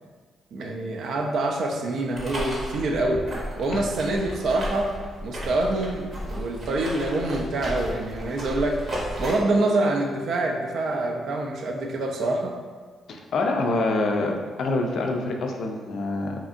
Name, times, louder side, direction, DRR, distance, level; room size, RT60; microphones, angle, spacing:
voice 1, 0.5-3.2 3.6-4.9 5.2-8.8 9.2-12.5, right 2 dB, 70° right, 2 dB, 0.3 m, -26 dB
sound 1, 2.1-9.4, equal, 50° right, 0.8 m, -34 dB
voice 2, 13.1-16.4, left 2 dB, 70° left, 3 dB, 0.3 m, -26 dB
2.7 x 2.4 x 2.4 m, 1.5 s
cardioid pair, 90°, 0 cm